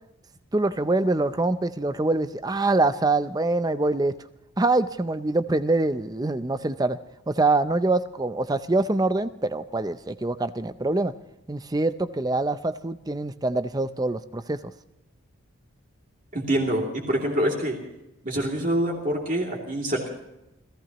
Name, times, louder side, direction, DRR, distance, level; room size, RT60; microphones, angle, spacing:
voice 1, 0.5-4.1 4.6-7.0 7.3-11.1 11.5-14.6, right 2 dB, 20° right, 12 dB, 0.5 m, -24 dB
voice 2, 16.3-17.8 18.2-20.1, right 1 dB, 40° right, -1 dB, 2.8 m, -25 dB
28.0 x 16.5 x 3.0 m, 0.91 s
head